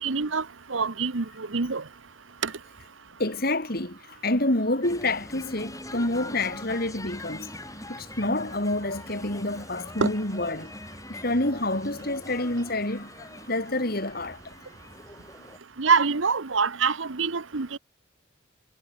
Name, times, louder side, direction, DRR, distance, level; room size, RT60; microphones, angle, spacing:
voice 1, 0.0-0.4 0.7-1.8 2.4-2.5 10.0-10.1 15.8-17.8, right 5 dB, 80° right, 1.1 m, -25 dB
voice 2, 3.2-7.5 7.9-10.7 11.1-14.4, left 2 dB, 50° left, 4.3 m, -28 dB
sound 1, 4.8-15.6, left 1 dB, 15° left, 7.6 m, -43 dB
head